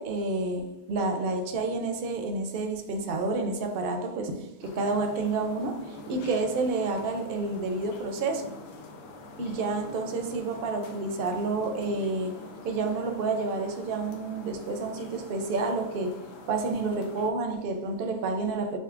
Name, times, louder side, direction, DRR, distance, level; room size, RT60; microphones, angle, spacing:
voice 1, 0.0-8.6 9.4-16.2 16.5-18.8, right 3 dB, 60° right, 5 dB, 0.7 m, -29 dB
sound 1, 4.6-17.3, left 2 dB, 90° left, 1.0 m, -45 dB
6.3 x 2.1 x 2.4 m, 0.87 s
omnidirectional pair, 1.3 m